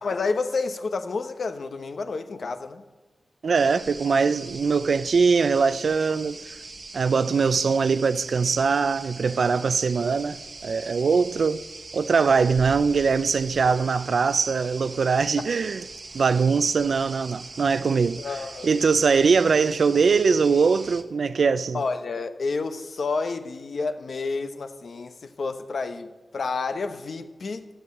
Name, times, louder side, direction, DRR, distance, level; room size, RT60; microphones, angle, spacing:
voice 1, 0.0-2.8 13.7-13.8 18.2-18.9 21.7-27.7, left 4 dB, 65° left, 0.9 m, -30 dB
voice 2, 3.4-6.5 6.9-11.6 11.9-15.8 16.1-18.2 18.6-21.8, right 5 dB, 70° right, 0.5 m, -22 dB
sound 1, 3.5-21.0, right 3 dB, 50° right, 1.1 m, -41 dB
12.5 x 7.9 x 8.3 m
wide cardioid pair, 95°, 0 cm